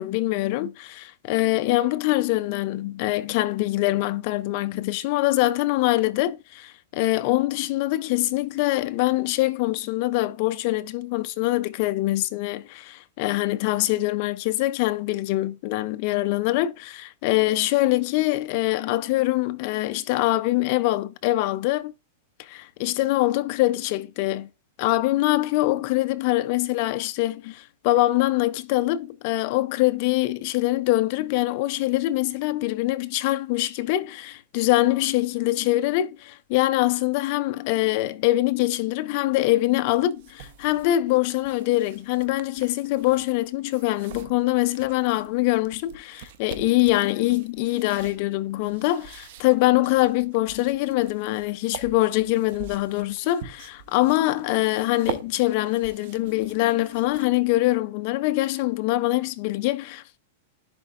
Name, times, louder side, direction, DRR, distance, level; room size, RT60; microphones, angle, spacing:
voice 1, 0.0-21.9 22.4-24.5 24.8-60.0, left 17 dB, 40° left, 0.5 m, -24 dB
sound 1, 39.8-57.5, right 9 dB, 50° right, 0.7 m, -44 dB
10.5 x 3.9 x 2.4 m
supercardioid pair, 165°, 0 cm